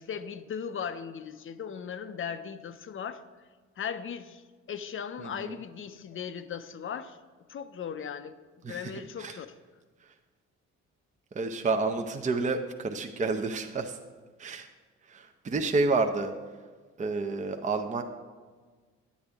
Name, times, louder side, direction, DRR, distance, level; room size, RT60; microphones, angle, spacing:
voice 1, 0.0-3.2 3.8-4.4 4.7-7.2 7.5-8.4 8.6-9.5, left 7 dB, 45° left, 11 dB, 0.5 m, -37 dB
voice 2, 5.2-5.6 8.6-9.4 11.3-14.0 14.4-14.7 15.1-16.3 17.0-18.0, right 3 dB, 25° right, 5 dB, 0.6 m, -30 dB
9.8 x 8.2 x 3.5 m, 1.4 s
cardioid pair, 90°, 30 cm